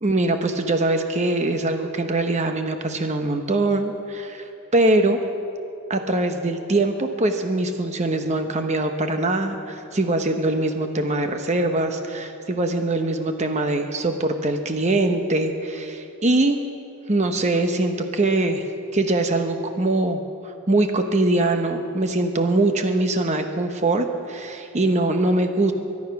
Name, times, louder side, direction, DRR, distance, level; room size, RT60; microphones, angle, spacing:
voice 1, 0.0-5.2 5.9-16.6 17.1-18.6 18.9-25.7, right 2 dB, 30° right, 6 dB, 0.8 m, -22 dB
23.5 x 9.7 x 5.8 m, 2.7 s
head